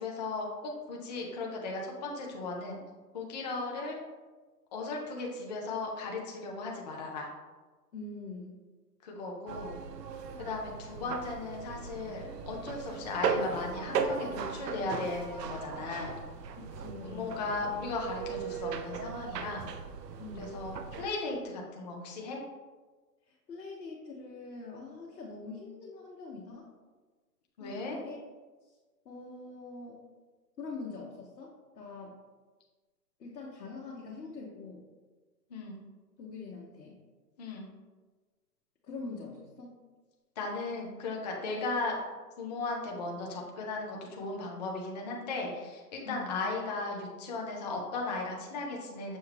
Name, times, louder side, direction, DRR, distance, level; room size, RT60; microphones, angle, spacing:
voice 1, 0.0-2.8 3.1-4.0 4.7-7.3 9.0-9.8 10.4-16.1 17.0-19.7 20.4-22.4 27.6-28.0 35.5-35.8 37.4-37.7 40.4-42.0 42.4-49.2, left 3 dB, 30° left, -1 dB, 0.5 m, -36 dB
voice 2, 7.9-8.6 16.6-17.5 20.2-20.6 23.3-26.7 27.6-28.2 28.6-28.8 29.0-30.0 30.6-32.2 33.2-34.8 36.2-37.0 38.9-39.8 46.1-46.4, left 3 dB, 80° left, -3 dB, 1.0 m, -44 dB
sound 1, 9.5-21.1, right 5 dB, 75° right, 0.6 m, -37 dB
6.3 x 2.2 x 3.2 m, 1.3 s
hypercardioid pair, 135°, 49 cm